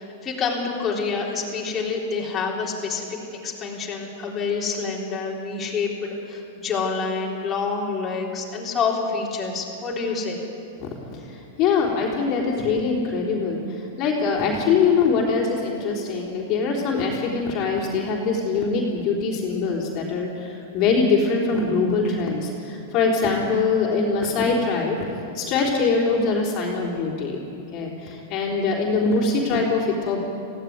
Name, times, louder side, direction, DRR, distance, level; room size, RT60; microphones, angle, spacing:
voice 1, 0.0-3.0 3.4-10.4, left 5 dB, 20° left, -5 dB, 3.8 m, -27 dB
voice 2, 10.8-25.0 25.3-27.4 27.7-30.2, left 4 dB, 40° left, -2 dB, 3.7 m, -23 dB
19.5 x 16.0 x 9.6 m, 2.8 s
hypercardioid pair, 140°, 0 cm